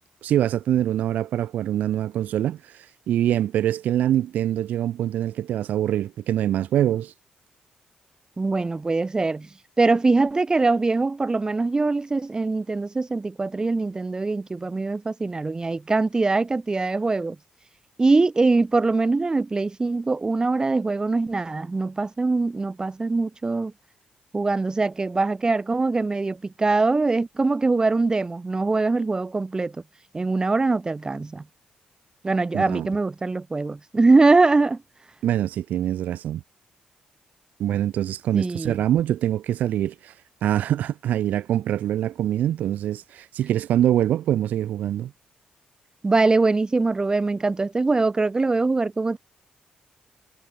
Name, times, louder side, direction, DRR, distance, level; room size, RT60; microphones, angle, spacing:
voice 1, 0.2-7.1 32.5-32.9 35.2-36.4 37.6-40.1 40.4-45.1, right 11 dB, 75° right, 0.3 m, -24 dB
voice 2, 8.4-9.5 9.8-17.4 18.0-23.7 24.3-29.8 30.1-31.4 32.2-34.8 38.3-38.8 46.0-49.2, right 3 dB, 25° right, 0.6 m, -22 dB
supercardioid pair, 55°, 3 cm